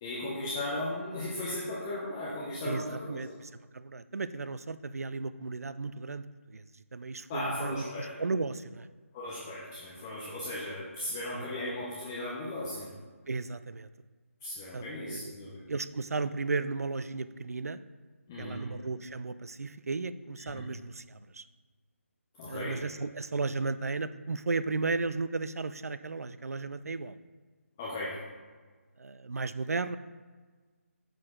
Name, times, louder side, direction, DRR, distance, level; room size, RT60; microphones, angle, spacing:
voice 1, 0.0-3.2 7.3-8.1 9.1-12.9 14.4-15.6 18.3-18.7 20.4-20.7 22.4-22.8 27.8-28.2, left 1 dB, 10° left, -8 dB, 0.6 m, -36 dB
voice 2, 3.1-6.6 6.9-8.9 11.3-11.4 13.3-13.9 14.7-15.3 15.7-17.8 18.4-21.4 22.5-27.2 29.0-30.0, right 3 dB, 85° right, 14 dB, 0.4 m, -35 dB
6.8 x 6.3 x 3.7 m, 1.4 s
figure-of-eight pair, 175°, 8 cm